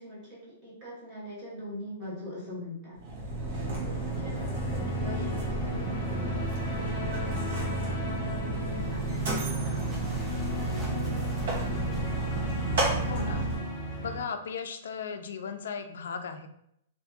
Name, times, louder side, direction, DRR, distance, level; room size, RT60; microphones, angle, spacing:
voice 1, 0.0-3.0 3.4-6.4 6.8-12.2, equal, 25° right, -8 dB, 1.1 m, -44 dB
Mechanisms, 3.0-13.7, right 2 dB, 70° right, 0.9 m, -32 dB
sound 1, 3.1-14.2, equal, 40° left, 0.7 m, -35 dB
voice 2, 3.6-3.9 13.0-13.5 14.0-16.5, left 6 dB, 75° left, 7 dB, 0.3 m, -37 dB
sound 2, 8.6-14.2, equal, 5° right, 0.3 m, -50 dB
2.6 x 2.4 x 2.3 m, 0.75 s
hypercardioid pair, 170°, 0 cm